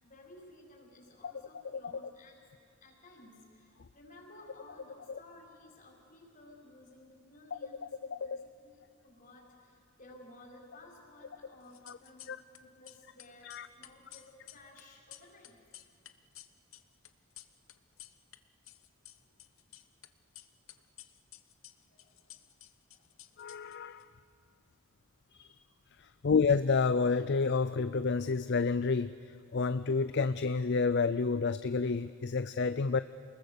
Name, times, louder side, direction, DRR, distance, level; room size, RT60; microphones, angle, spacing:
voice 1, 0.0-2.4 2.8-15.6 21.9-22.6 22.9-23.8 26.1-26.3, left 1 dB, 40° left, 0 dB, 5.0 m, -56 dB
sound 1, 11.6-12.6 12.8-18.4 18.6-20.1 20.4-24.0, left 14 dB, 80° left, 1.0 m, -53 dB
voice 2, 23.4-24.1 25.3-25.5 26.0-29.2 29.5-33.0, left 4 dB, 55° left, 13 dB, 0.5 m, -29 dB
28.0 x 21.0 x 6.8 m, 2.6 s
head